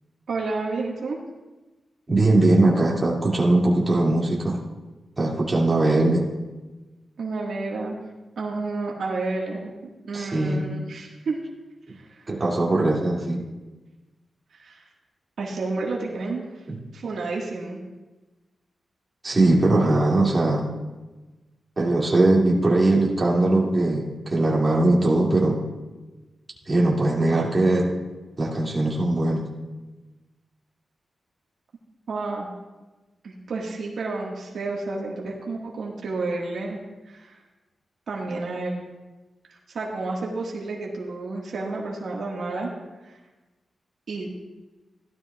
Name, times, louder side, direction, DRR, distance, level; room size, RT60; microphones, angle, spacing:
voice 1, 0.3-1.2 7.2-8.0 8.4-9.7 10.1-11.4 11.9-12.3 14.5-14.8 15.4-16.6 16.9-17.8 32.1-32.5 33.2-36.8 37.0-37.4 38.1-38.8 39.5-42.7 43.0-43.1 44.1-44.3, right 3 dB, 80° right, -2 dB, 1.7 m, -30 dB
voice 2, 2.1-4.6 5.2-6.2 10.1-10.7 12.3-13.4 16.7-16.8 19.2-20.7 21.8-25.6 26.7-27.9 28.4-29.5, right 2 dB, 30° right, -3 dB, 2.5 m, -20 dB
16.5 x 12.5 x 2.4 m, 1.2 s
wide cardioid pair, 115°, 0 cm